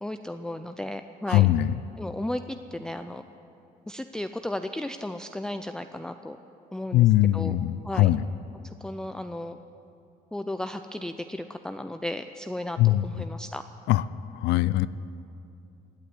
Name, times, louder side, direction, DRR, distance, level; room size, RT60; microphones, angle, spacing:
voice 1, 0.0-1.5 2.0-3.3 3.9-6.4 6.7-7.6 7.8-8.2 8.6-9.6 10.3-13.6, left 1 dB, 5° left, 8 dB, 0.4 m, -34 dB
voice 2, 1.3-1.7 6.9-8.2 12.8-13.1 13.9-14.0 14.3-14.9, left 15 dB, 85° left, 16 dB, 0.4 m, -21 dB
17.0 x 8.3 x 9.9 m, 2.7 s
cardioid pair, 110°, 17 cm